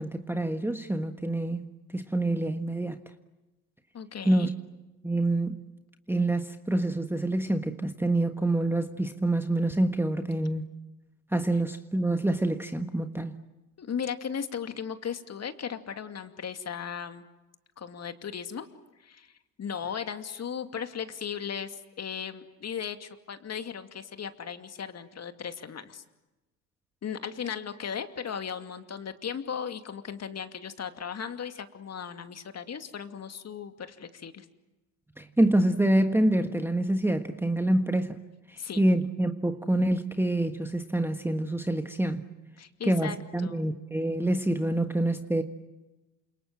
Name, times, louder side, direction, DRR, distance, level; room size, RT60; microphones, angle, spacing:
voice 1, 0.0-1.6 1.9-3.0 4.2-4.5 5.0-5.6 6.1-10.7 11.3-13.3 35.2-38.2 38.5-42.2 42.8-45.4, right 1 dB, 5° right, 1.5 m, -26 dB
voice 2, 3.9-4.5 13.8-17.3 17.8-18.7 19.0-19.3 19.6-26.0 27.0-34.5 38.6-38.8 42.6-43.2 43.4-43.6, left 7 dB, 30° left, 2.5 m, -36 dB
29.0 x 27.5 x 7.5 m
hypercardioid pair, 75°, 48 cm